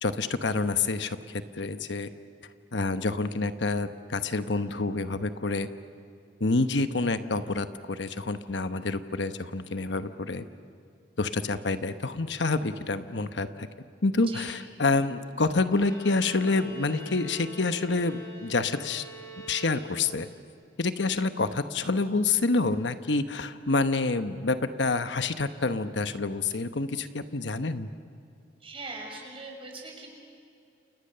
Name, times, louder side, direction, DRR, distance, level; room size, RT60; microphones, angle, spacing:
voice 1, 0.0-2.1 2.7-5.7 6.4-10.5 11.2-13.7 14.0-19.0 19.4-20.3 20.8-27.9, left 3 dB, 70° left, 10 dB, 1.1 m, -28 dB
Bowed string instrument, 15.7-20.4, left 2 dB, 20° left, 6.8 m, -45 dB
voice 2, 28.6-30.1, right 3 dB, 30° right, 0 dB, 6.5 m, -40 dB
29.0 x 29.0 x 6.8 m, 2.6 s
head